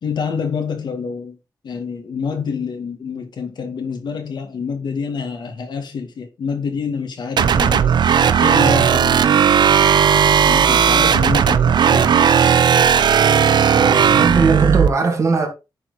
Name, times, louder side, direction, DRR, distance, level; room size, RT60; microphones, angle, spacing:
voice 1, 0.0-1.4 1.6-7.9 8.4-9.8 10.4-12.6, left 5 dB, 80° left, 2.0 m, -27 dB
sound 1, 7.4-14.9, right 7 dB, 80° right, 0.6 m, -15 dB
voice 2, 13.7-15.5, right 4 dB, 40° right, 2.4 m, -19 dB
9.9 x 4.5 x 4.1 m
wide cardioid pair, 125°, 7 cm